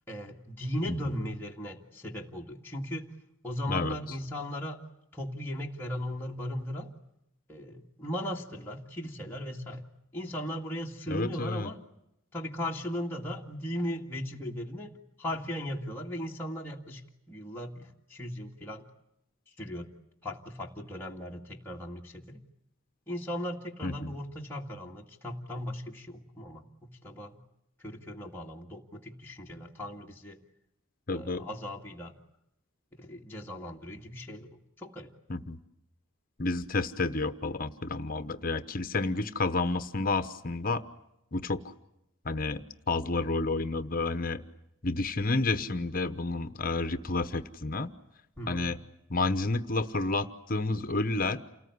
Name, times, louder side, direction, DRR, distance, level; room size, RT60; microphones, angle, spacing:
voice 1, 0.1-3.0 3.4-4.8 5.1-6.9 7.5-9.8 10.1-11.8 12.3-17.0 17.3-18.9 19.6-19.9 20.2-22.4 23.1-27.4 27.8-30.4 31.1-32.2 33.0-34.5 34.8-35.1 48.4-48.7, equal, 10° left, -3 dB, 2.0 m, -37 dB
voice 2, 3.7-4.2 11.1-11.7 23.8-24.1 31.1-31.5 35.3-35.6 36.4-40.8 41.3-41.6 42.2-44.4 44.8-47.9 48.5-48.8 49.1-51.4, left 3 dB, 40° left, 10 dB, 1.0 m, -30 dB
29.0 x 19.5 x 9.6 m, 0.82 s
head